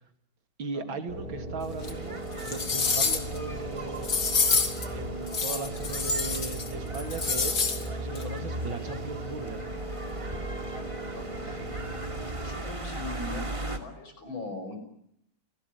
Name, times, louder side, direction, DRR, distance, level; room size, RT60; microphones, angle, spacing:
voice 1, 0.6-4.2 4.9-9.7, right 4 dB, 85° right, 7 dB, 3.2 m, -38 dB
sound 1, 1.1-12.8, right 1 dB, 50° right, 7.8 m, -38 dB
sound 2, 1.8-1.9 2.4-3.4 4.0-4.8 5.3-6.7 6.9-7.8 8.1-8.2, left 4 dB, 55° left, 3.2 m, -27 dB
sound 3, 1.8-13.8, right 1 dB, 15° right, 2.5 m, -38 dB
voice 2, 10.7-11.7 12.4-14.8, left 2 dB, 90° left, 7 dB, 6.7 m, -41 dB
29.0 x 18.5 x 9.4 m, 0.73 s
omnidirectional pair, 2.1 m